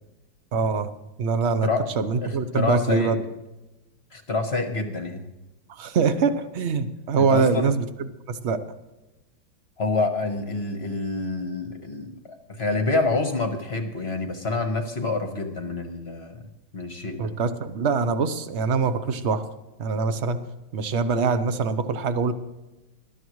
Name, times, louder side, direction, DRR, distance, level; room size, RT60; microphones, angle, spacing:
voice 1, 0.5-0.9 1.2-1.7 2.0-3.2 5.7-8.6 17.2-19.4 19.8-20.4 20.7-22.3, right 5 dB, 60° right, 11 dB, 0.7 m, -24 dB
voice 2, 2.2-3.1 4.1-5.2 7.2-7.7 9.8-12.2 12.5-16.4 16.7-17.3, left 3 dB, 35° left, 5 dB, 1.2 m, -27 dB
20.0 x 12.5 x 3.1 m, 1.0 s
omnidirectional pair, 2.2 m